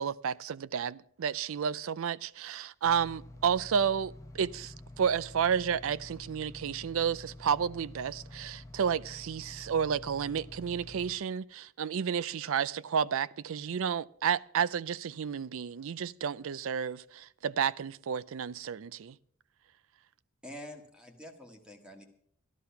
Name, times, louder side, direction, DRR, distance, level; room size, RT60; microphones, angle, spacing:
voice 1, 0.0-19.2, right 7 dB, 65° right, 0.4 m, -31 dB
sound 1, 2.8-11.1, left 1 dB, 15° left, 0.9 m, -49 dB
voice 2, 20.4-22.0, left 1 dB, 5° right, 1.6 m, -47 dB
13.0 x 11.0 x 5.7 m
head